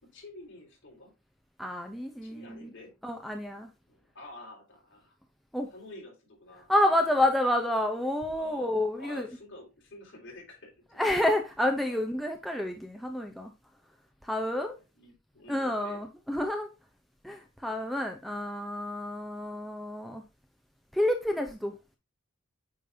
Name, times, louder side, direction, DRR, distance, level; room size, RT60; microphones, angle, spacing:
voice 1, 0.0-1.1 2.2-2.9 3.9-5.1 5.7-7.3 8.3-10.8 11.9-12.0 14.6-16.0, left 1 dB, 60° left, 4.3 m, -49 dB
voice 2, 1.6-2.7 3.0-3.7 5.5-5.7 6.7-9.3 11.0-13.5 14.2-14.8 15.5-16.7 17.2-20.2 20.9-21.7, left 1 dB, ahead, 0.7 m, -29 dB
8.6 x 5.3 x 2.7 m
head